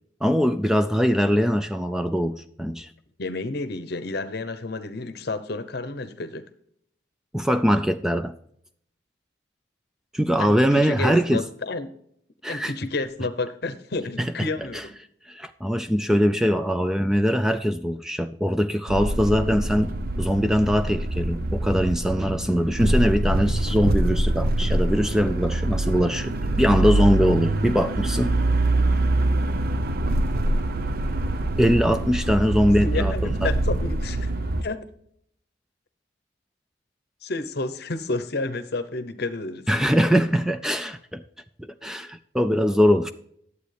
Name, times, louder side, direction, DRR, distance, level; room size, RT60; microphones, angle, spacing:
voice 1, 0.2-2.9 7.3-8.4 10.1-11.4 12.4-12.7 14.2-14.3 14.7-14.8 15.3-28.4 31.6-33.5 39.7-41.2 41.6-43.1, equal, 5° right, 0.3 m, -22 dB
voice 2, 3.2-6.5 10.4-11.9 12.5-14.9 32.8-34.3 34.6-34.8 37.2-39.7, left 3 dB, 60° left, 0.8 m, -30 dB
sound 1, 18.9-34.6, right 1 dB, 55° right, 0.7 m, -24 dB
11.5 x 8.2 x 3.3 m
head